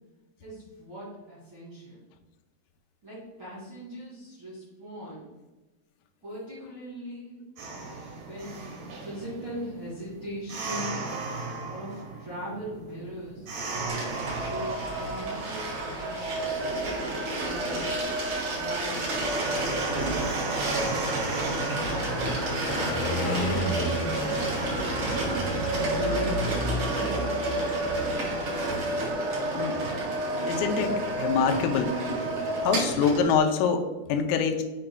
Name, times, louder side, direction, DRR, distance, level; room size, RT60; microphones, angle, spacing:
voice 1, 0.4-2.0 3.0-5.3 6.2-7.4 8.1-10.9 11.7-13.5 14.4-16.5 17.4-17.9 18.5-20.8 21.4-25.2 25.7-26.7, equal, 85° right, -9 dB, 1.1 m, -40 dB
sound 1, 7.6-24.7, right 3 dB, 70° right, 2.0 m, -37 dB
sound 2, 13.9-33.4, right 2 dB, 50° right, 2.8 m, -30 dB
Car passing by, 20.5-29.0, left 1 dB, 70° left, 2.9 m, -34 dB
voice 2, 30.4-32.0 32.6-34.6, left 6 dB, 85° left, 5 dB, 3.2 m, -25 dB
8.8 x 4.8 x 2.3 m, 1.1 s
omnidirectional pair, 5.8 m